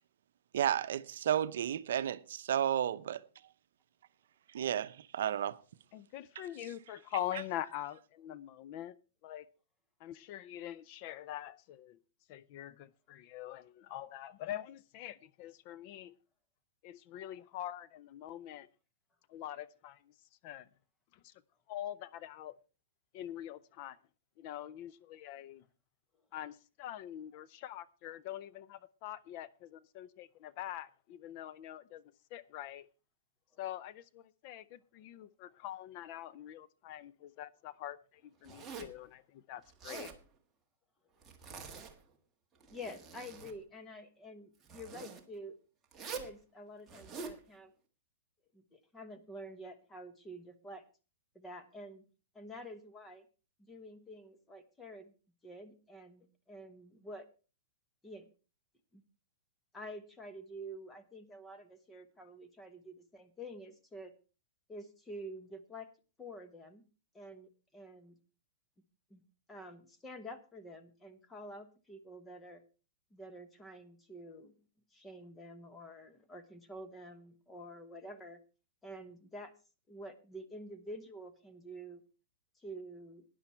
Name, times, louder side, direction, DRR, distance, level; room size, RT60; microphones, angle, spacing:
voice 1, 0.5-3.2 4.5-5.6, right 10 dB, 70° right, 0.7 m, -32 dB
voice 2, 5.9-9.0 9.2-9.5 10.0-12.0 12.3-16.2 16.8-18.7 19.3-20.1 20.4-20.7 21.1-21.3 21.7-22.5 23.1-24.0 24.4-25.6 26.3-32.9 33.6-40.1, left 12 dB, 35° left, 0.5 m, -44 dB
Zipper (clothing), 38.4-39.0 39.7-40.2 41.2-42.1 42.6-43.6 44.6-45.2 45.9-46.3 46.9-47.4, right 5 dB, 10° right, 1.5 m, -46 dB
voice 3, 42.7-45.6 46.1-47.7 48.5-50.8 51.3-52.0 52.3-53.2 53.6-55.1 55.4-57.3 58.0-58.3 58.9-59.0 59.7-64.1 64.7-65.9 66.2-66.8 67.1-68.1 69.1-69.2 69.5-72.6 73.1-74.5 74.9-78.4 78.8-79.5 79.9-82.0 82.6-83.2, equal, 10° left, 1.2 m, -48 dB
13.0 x 10.0 x 4.4 m
hypercardioid pair, 160°, 0 cm